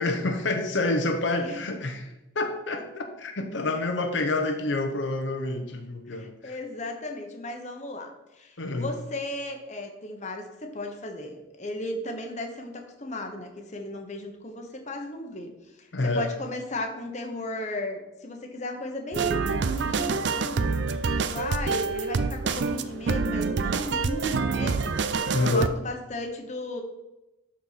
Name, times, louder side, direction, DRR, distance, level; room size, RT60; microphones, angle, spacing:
voice 1, 0.0-6.6 8.6-8.9 15.9-16.3 25.3-25.7, left 2 dB, 80° left, 5 dB, 0.9 m, -28 dB
voice 2, 6.1-15.5 15.8-20.8 21.2-26.8, left 1 dB, 40° left, 3 dB, 1.1 m, -35 dB
sound 1, 19.1-25.7, right 4 dB, 65° right, 0.4 m, -27 dB
12.0 x 4.5 x 4.2 m, 0.97 s
head